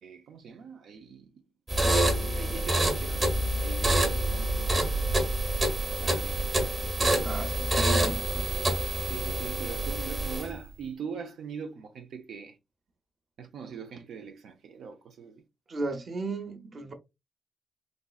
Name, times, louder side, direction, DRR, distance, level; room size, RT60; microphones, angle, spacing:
voice 1, 0.0-1.3 1.7-5.2 6.0-6.5 8.5-12.6 13.4-15.4, right 6 dB, 85° right, 0.5 m, -42 dB
sound 1, 1.7-10.6, right 1 dB, 30° right, 1.1 m, -27 dB
voice 2, 7.2-8.5 15.7-16.9, right 2 dB, 45° right, 0.8 m, -35 dB
3.6 x 3.0 x 2.3 m
cardioid pair, 105°, 0 cm